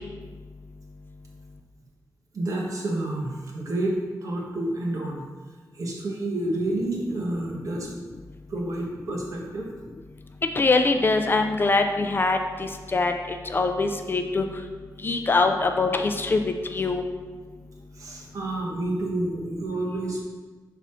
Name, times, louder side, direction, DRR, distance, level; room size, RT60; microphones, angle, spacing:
voice 1, 2.3-5.2 5.7-7.9 8.5-9.7 17.9-20.2, right 1 dB, 55° right, -2 dB, 1.2 m, -29 dB
voice 2, 10.6-14.4 15.0-16.4 16.7-17.0, left 3 dB, 30° left, 5 dB, 0.4 m, -23 dB
6.1 x 4.0 x 4.3 m, 1.4 s
wide cardioid pair, 155°, 7 cm